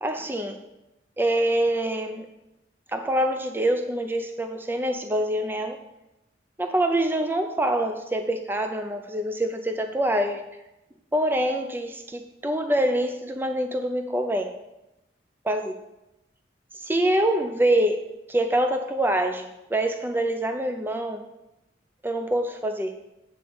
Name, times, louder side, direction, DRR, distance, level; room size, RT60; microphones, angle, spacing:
voice 1, 0.0-0.6 1.2-2.3 2.9-5.8 6.6-10.4 11.1-14.5 15.5-15.8 16.7-21.2 22.0-23.0, right 1 dB, 10° right, 6 dB, 0.4 m, -25 dB
8.5 x 3.8 x 6.9 m, 0.94 s
head